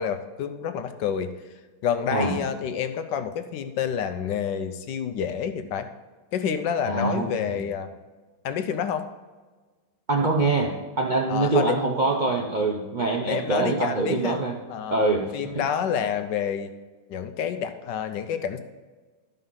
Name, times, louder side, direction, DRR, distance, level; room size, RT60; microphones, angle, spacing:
voice 1, 0.0-1.3 1.8-5.9 6.3-7.9 8.4-9.0 11.3-11.8 13.3-14.4 14.7-15.0 15.3-16.7 17.1-18.6, left 8 dB, 70° left, 9 dB, 1.2 m, -28 dB
voice 2, 6.9-7.6 10.1-14.6 14.9-15.3, right 3 dB, 70° right, 0 dB, 0.4 m, -24 dB
12.0 x 5.5 x 5.6 m, 1.3 s
omnidirectional pair, 2.2 m